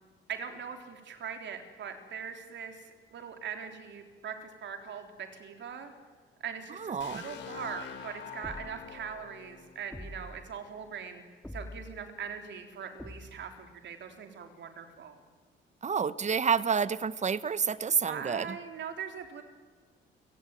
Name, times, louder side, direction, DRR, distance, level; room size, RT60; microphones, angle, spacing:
voice 1, 0.3-2.8 3.1-5.9 6.4-11.2 11.5-15.2 18.1-19.4, right 7 dB, 65° right, 6 dB, 3.6 m, -41 dB
voice 2, 6.8-7.2 15.8-18.6, right 6 dB, 35° right, 17 dB, 1.0 m, -29 dB
sound 1, 7.0-10.8, left 7 dB, 65° left, 4.0 m, -46 dB
sound 2, 8.4-9.0 9.9-10.5 11.4-12.1 13.0-13.6, left 1 dB, 5° left, 2.0 m, -45 dB
28.5 x 18.0 x 9.2 m, 1.5 s
cardioid pair, 90°, 20 cm